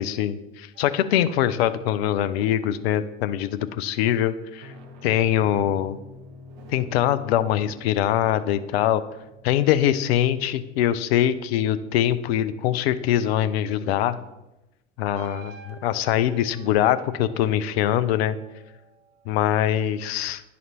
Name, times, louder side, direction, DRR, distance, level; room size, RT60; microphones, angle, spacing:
voice 1, 0.0-4.7 5.0-6.0 6.7-9.0 9.4-14.2 15.0-18.4 19.3-20.4, left 11 dB, 55° left, 13 dB, 0.5 m, -23 dB
sound 1, 0.7-3.4 4.4-11.3 15.1-19.3, right 2 dB, 45° right, 0.9 m, -48 dB
10.5 x 4.1 x 2.9 m, 0.99 s
figure-of-eight pair, 70°, 38 cm